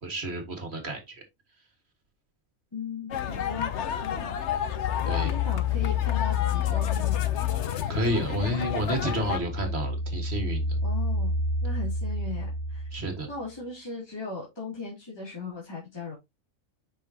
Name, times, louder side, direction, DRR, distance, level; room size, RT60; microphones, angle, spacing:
voice 1, 0.0-1.2 5.0-5.3 7.7-10.8 12.9-13.3, right 1 dB, 50° right, 2.1 m, -30 dB
voice 2, 2.7-4.4 5.0-7.2 10.8-12.9 13.3-16.1, left 3 dB, 20° left, 2.7 m, -38 dB
sound 1, 3.1-9.4, left 9 dB, 60° left, 1.0 m, -31 dB
sound 2, 4.6-8.5 8.8-13.4, left 5 dB, ahead, 1.6 m, -29 dB
7.1 x 5.8 x 2.8 m
omnidirectional pair, 1.4 m